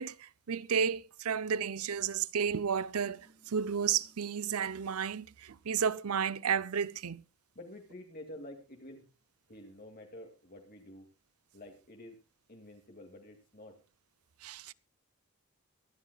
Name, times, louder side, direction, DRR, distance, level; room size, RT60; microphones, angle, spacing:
voice 1, 0.0-7.2 14.4-14.7, right 7 dB, 85° right, 0.6 m, -32 dB
sound 1, 2.4-4.8, right 2 dB, 40° right, 4.0 m, -65 dB
voice 2, 7.5-9.1 9.5-11.1 11.5-12.2 12.5-13.8, left 1 dB, 45° left, 2.3 m, -49 dB
24.0 x 11.5 x 2.4 m
head